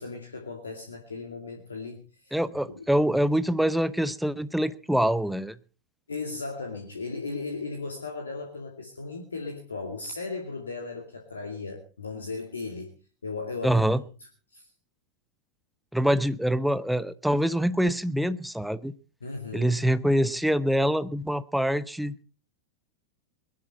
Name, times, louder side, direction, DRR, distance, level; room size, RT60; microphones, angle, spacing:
voice 1, 0.0-2.3 2.7-2.8 6.1-12.9 13.2-13.9 14.5-14.7 19.2-19.8, left 3 dB, 75° left, 2.4 m, -36 dB
voice 2, 2.3-5.6 13.6-14.0 15.9-18.9 19.5-22.2, equal, ahead, 0.8 m, -25 dB
21.0 x 12.5 x 4.2 m
figure-of-eight pair, 90°, 0 cm